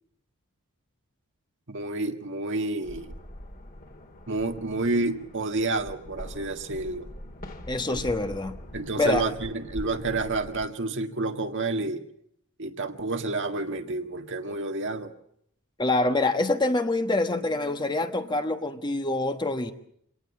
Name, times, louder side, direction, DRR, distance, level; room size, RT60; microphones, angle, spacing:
voice 1, 1.7-3.2 4.3-7.1 7.9-8.0 8.7-12.0 12.6-15.1, right 2 dB, 55° right, 6 dB, 1.8 m, -29 dB
sound 1, 2.8-10.7, left 1 dB, 40° left, 2.5 m, -43 dB
voice 2, 7.7-8.6 9.0-9.2 15.8-19.7, left 2 dB, 20° left, 7 dB, 1.3 m, -25 dB
26.0 x 18.0 x 7.4 m, 0.69 s
head